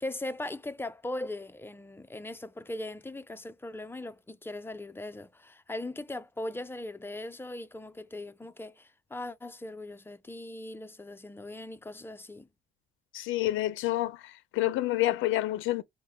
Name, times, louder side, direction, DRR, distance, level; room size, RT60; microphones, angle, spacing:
voice 1, 0.0-12.5, left 1 dB, 10° left, 0.4 m, -39 dB
voice 2, 13.1-15.8, left 16 dB, 80° left, 0.4 m, -28 dB
4.4 x 2.1 x 3.4 m
cardioid pair, 90°, 20 cm